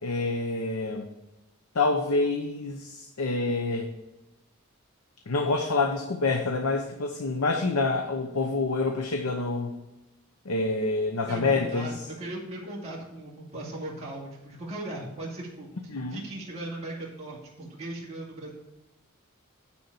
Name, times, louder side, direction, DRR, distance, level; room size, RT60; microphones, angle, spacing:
voice 1, 0.0-1.1 1.7-3.9 5.3-9.7 10.5-11.9 15.9-16.2, left 3 dB, 90° left, 4 dB, 0.9 m, -27 dB
voice 2, 11.3-15.7 16.0-18.5, right 1 dB, 30° right, -5 dB, 2.5 m, -38 dB
9.7 x 4.2 x 6.8 m, 0.98 s
head